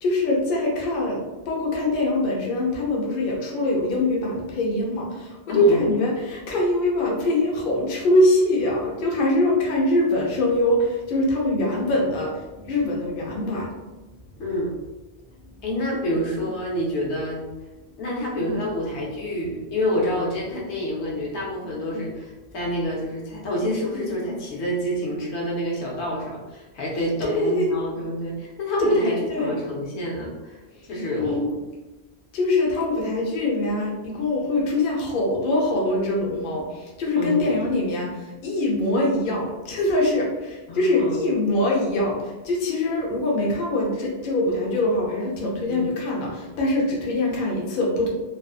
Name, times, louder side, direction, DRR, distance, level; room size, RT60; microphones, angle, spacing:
voice 1, 0.0-13.7 27.2-27.7 28.8-29.5 30.7-30.8 31.2-31.5 32.3-48.1, left 1 dB, 60° left, -2 dB, 0.7 m, -23 dB
voice 2, 5.5-5.9 14.4-14.7 15.6-17.4 18.0-30.6 30.9-31.6 37.2-37.5 40.7-41.2 45.7-45.8, equal, 80° left, -3 dB, 1.0 m, -27 dB
2.5 x 2.4 x 2.3 m, 1.1 s
omnidirectional pair, 1.1 m